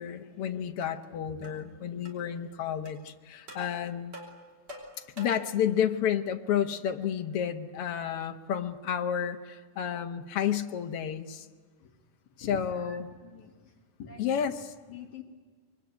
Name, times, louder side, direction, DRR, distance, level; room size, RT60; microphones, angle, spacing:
voice 1, 0.0-4.1 5.2-11.5 12.4-13.1 14.2-14.7, left 8 dB, 80° left, 6 dB, 1.3 m, -31 dB
sound 1, 0.8-0.9 1.4-1.6 2.0-2.2 2.8-3.0 3.5-3.7 4.1-5.5, equal, 30° right, 4.7 m, -46 dB
voice 2, 12.4-13.0 13.3-13.5 14.0-14.5 14.9-15.2, left 6 dB, 60° left, 2 dB, 2.9 m, -44 dB
26.0 x 22.5 x 9.3 m, 1.5 s
omnidirectional pair, 4.0 m